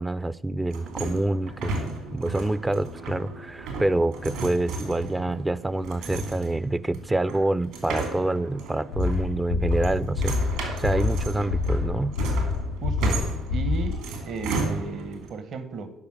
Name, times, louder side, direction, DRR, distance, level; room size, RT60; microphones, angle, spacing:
voice 1, 0.0-1.7 2.1-10.4 10.8-12.1, right 2 dB, 15° right, 17 dB, 0.4 m, -26 dB
sound 1, 0.7-15.3, right 3 dB, 70° right, 2.6 m, -34 dB
sound 2, 8.9-14.0, left 3 dB, 90° left, 1.9 m, -27 dB
voice 2, 12.8-13.2 13.5-15.9, right 4 dB, 55° right, 11 dB, 1.1 m, -34 dB
9.8 x 5.9 x 7.8 m, 0.82 s
hypercardioid pair, 50°, 0 cm